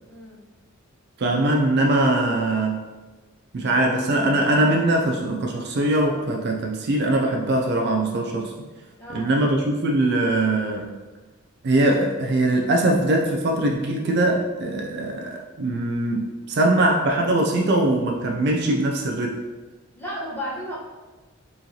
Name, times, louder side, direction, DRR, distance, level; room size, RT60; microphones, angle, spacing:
voice 1, 0.1-0.4 9.0-9.3 19.9-20.8, equal, 10° left, -8 dB, 1.1 m, -33 dB
voice 2, 1.2-2.8 3.5-8.5 9.1-10.9 11.6-19.3, right 1 dB, 50° right, 1 dB, 0.4 m, -22 dB
4.6 x 3.2 x 2.8 m, 1.2 s
head